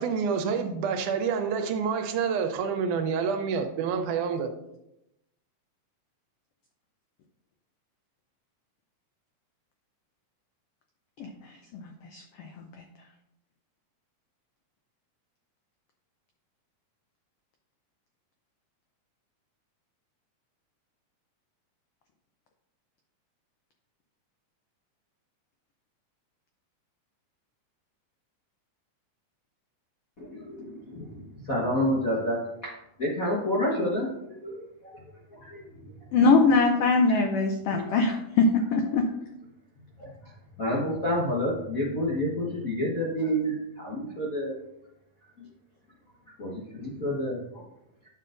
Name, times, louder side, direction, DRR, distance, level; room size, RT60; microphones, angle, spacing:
voice 1, 0.0-4.5, right 6 dB, 90° right, 5 dB, 2.3 m, -28 dB
voice 2, 11.2-12.8 36.1-39.1, left 3 dB, 90° left, 4 dB, 1.3 m, -23 dB
voice 3, 30.2-32.7 33.0-35.0 35.3-35.7 37.1-37.2 37.9-38.1 40.0-40.3 40.6-44.5 46.4-47.6, equal, 60° left, -5 dB, 0.8 m, -29 dB
10.0 x 6.8 x 2.5 m, 0.84 s
omnidirectional pair, 3.4 m